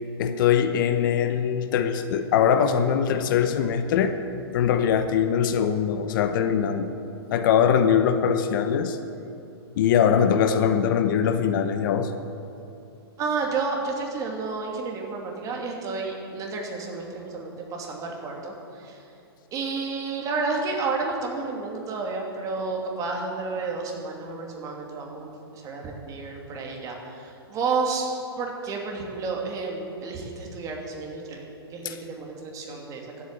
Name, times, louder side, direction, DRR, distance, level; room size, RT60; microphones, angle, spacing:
voice 1, 0.2-4.1 4.5-6.9 7.3-9.0 9.8-12.1 31.8-32.0, left 8 dB, 50° left, 8 dB, 0.9 m, -22 dB
voice 2, 13.2-18.5 18.8-19.0 19.5-28.1 28.4-31.4 31.7-33.1, right 4 dB, 25° right, 0 dB, 2.7 m, -31 dB
14.0 x 8.6 x 9.2 m, 2.7 s
hypercardioid pair, 130°, 13 cm